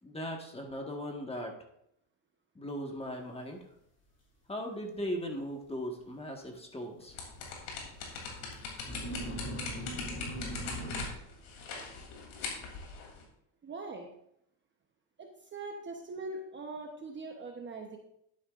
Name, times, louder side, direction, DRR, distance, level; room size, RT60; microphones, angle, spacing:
voice 1, 0.0-1.5 2.5-3.6 4.5-7.2, equal, 10° left, 2 dB, 1.5 m, -38 dB
sound 1, 4.9-5.0 5.4-5.5 7.0-7.1 7.4-7.5 8.4-8.6 8.8-11.1, right 1 dB, 30° left, 2.9 m, -39 dB
sound 2, 7.1-13.2, left 4 dB, 85° left, 3.1 m, -41 dB
voice 2, 13.6-14.1 15.2-18.0, right 3 dB, 25° right, 2 dB, 0.9 m, -42 dB
11.0 x 9.7 x 2.5 m, 0.75 s
cardioid pair, 125°, 47 cm